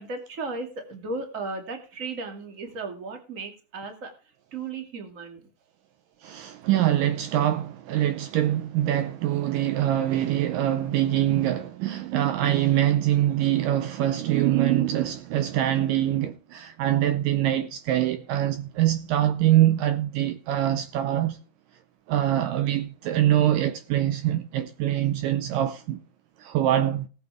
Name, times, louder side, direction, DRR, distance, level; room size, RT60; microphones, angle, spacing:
voice 1, 0.0-5.5, right 3 dB, 25° right, 2.1 m, -35 dB
voice 2, 6.2-21.4 22.1-26.0 26.4-27.1, right 12 dB, 75° right, 2.2 m, -24 dB
19.0 x 8.0 x 3.5 m
omnidirectional pair, 4.3 m